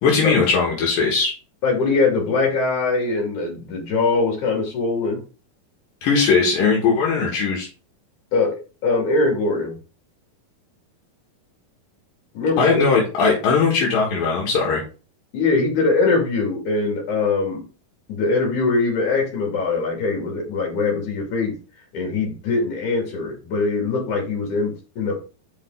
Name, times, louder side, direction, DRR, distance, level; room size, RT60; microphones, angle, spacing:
voice 1, 0.0-1.3 6.0-7.7 12.6-14.8, left 5 dB, 80° left, -3 dB, 3.2 m, -19 dB
voice 2, 1.6-5.2 8.3-9.8 12.3-12.8 15.3-17.6 18.1-21.5 21.9-25.2, left 3 dB, 60° left, 0 dB, 3.7 m, -22 dB
7.4 x 5.1 x 3.8 m, 0.35 s
omnidirectional pair, 4.0 m